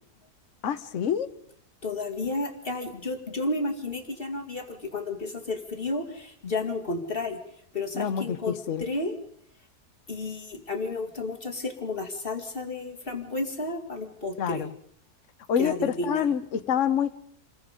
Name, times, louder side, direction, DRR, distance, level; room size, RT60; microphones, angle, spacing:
voice 1, 0.6-1.3 7.9-8.8 14.4-14.7 15.5-17.2, left 8 dB, 55° left, 1.3 m, -27 dB
voice 2, 1.8-7.4 7.7-9.1 10.1-14.6 15.6-16.2, left 2 dB, 35° left, 2.4 m, -32 dB
28.5 x 21.0 x 5.2 m
omnidirectional pair, 1.7 m